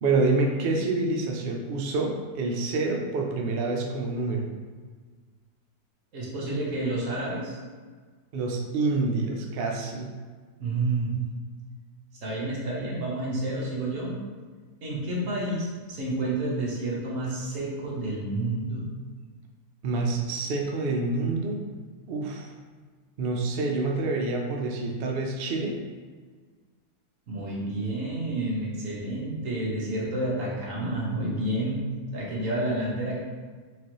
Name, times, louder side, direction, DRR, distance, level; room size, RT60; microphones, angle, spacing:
voice 1, 0.0-4.5 8.3-10.1 19.8-21.6 22.1-22.5 23.2-25.7, right 3 dB, 85° right, 1 dB, 0.5 m, -27 dB
voice 2, 6.1-7.6 10.6-11.2 12.2-14.1 14.8-18.9 27.3-31.8 32.1-33.2, right 2 dB, 60° right, -5 dB, 1.3 m, -29 dB
4.7 x 2.5 x 3.0 m, 1.5 s
omnidirectional pair, 1.7 m